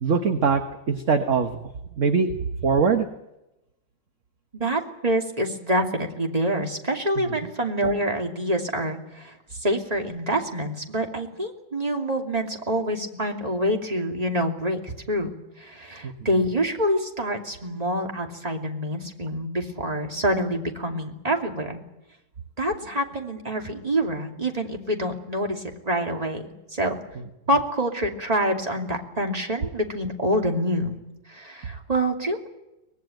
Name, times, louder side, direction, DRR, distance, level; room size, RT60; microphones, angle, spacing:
voice 1, 0.0-0.6 0.9-1.6 2.0-2.3 2.6-3.1 7.2-7.4 16.0-16.1 27.2-27.3, right 5 dB, 45° right, 7 dB, 1.5 m, -22 dB
voice 2, 4.5-21.8 22.6-27.0 27.5-31.0 31.3-32.5, right 1 dB, 20° right, 2 dB, 2.8 m, -26 dB
24.0 x 19.0 x 9.1 m, 0.94 s
omnidirectional pair, 1.9 m